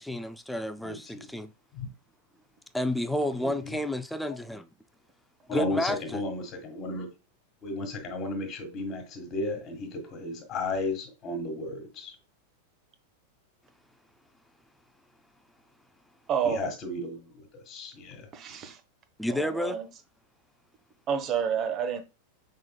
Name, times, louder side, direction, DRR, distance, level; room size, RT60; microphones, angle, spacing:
voice 1, 0.0-1.5 2.7-4.7 5.5-6.2 19.2-19.8, left 1 dB, 5° left, 0.4 m, -31 dB
voice 2, 3.3-3.7 5.5-7.1 7.6-12.1 16.4-18.3, left 2 dB, 30° left, 1.7 m, -34 dB
voice 3, 16.3-16.6 18.3-18.8 19.3-19.9 21.1-22.0, right 7 dB, 30° right, 0.9 m, -29 dB
5.8 x 3.7 x 2.2 m
figure-of-eight pair, 90°, 0 cm